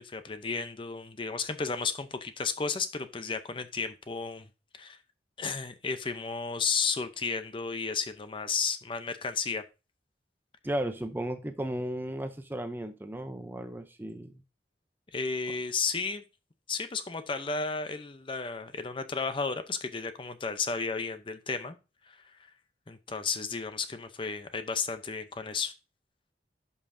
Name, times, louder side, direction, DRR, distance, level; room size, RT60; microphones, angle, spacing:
voice 1, 0.0-4.5 4.7-5.0 5.4-9.6 15.1-16.2 16.7-21.8 22.1-22.2 22.9-25.7, left 5 dB, 30° left, 0.6 m, -33 dB
voice 2, 10.6-14.3, right 1 dB, 10° right, 0.5 m, -35 dB
11.5 x 5.6 x 2.6 m
head